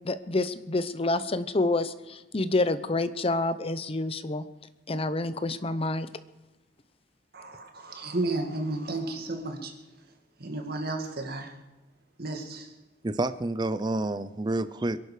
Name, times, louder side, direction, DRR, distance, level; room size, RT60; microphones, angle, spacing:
voice 1, 0.0-4.4 4.9-6.1, left 2 dB, 30° left, 13 dB, 0.7 m, -28 dB
voice 2, 7.3-9.7 10.4-11.5 12.2-12.7, right 2 dB, 55° right, 3 dB, 2.0 m, -33 dB
voice 3, 13.0-15.0, right 2 dB, 25° right, 13 dB, 0.5 m, -29 dB
23.5 x 11.0 x 5.0 m, 1.1 s
head